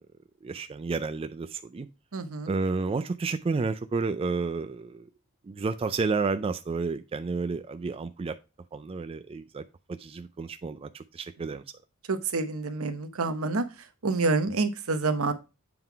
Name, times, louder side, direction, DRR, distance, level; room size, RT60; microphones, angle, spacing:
voice 1, 0.4-1.9 2.5-5.1 5.4-8.4 8.7-9.6 9.9-11.6, right 4 dB, 25° right, 0.3 m, -31 dB
voice 2, 2.1-2.5 12.1-13.6 14.0-15.3, right 3 dB, 75° right, 0.9 m, -27 dB
7.8 x 3.7 x 4.5 m
head